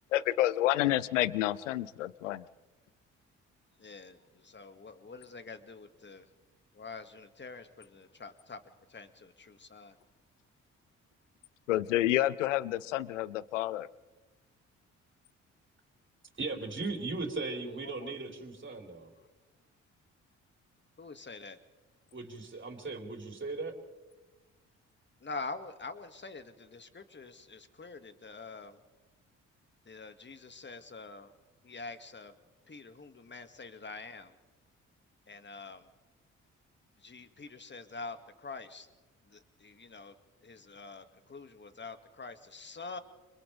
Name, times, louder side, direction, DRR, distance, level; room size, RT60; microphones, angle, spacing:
voice 1, 0.1-2.4 11.7-13.9, left 14 dB, 85° left, 21 dB, 0.6 m, -29 dB
voice 2, 3.8-6.3 6.7-8.6 8.9-10.0 17.6-18.1 21.0-21.6 25.2-28.8 29.9-31.3 31.6-32.3 32.7-34.4 35.3-35.9 37.0-38.9 39.2-40.1 40.4-43.0, left 3 dB, 30° left, 9 dB, 2.2 m, -46 dB
voice 3, 16.4-19.1 22.1-23.7, right 3 dB, 30° right, 1 dB, 4.8 m, -37 dB
29.5 x 25.5 x 3.5 m, 1.2 s
hypercardioid pair, 40°, 36 cm